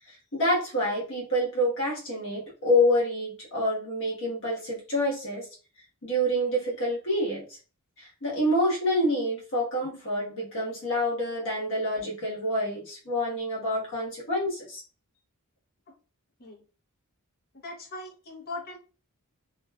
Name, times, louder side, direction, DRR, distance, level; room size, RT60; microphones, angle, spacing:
voice 1, 0.1-5.5 6.0-7.4 8.0-14.8, equal, 60° left, -4 dB, 1.1 m, -27 dB
voice 2, 17.6-18.8, left 2 dB, 45° left, 0 dB, 0.7 m, -39 dB
2.5 x 2.3 x 2.2 m, 0.36 s
head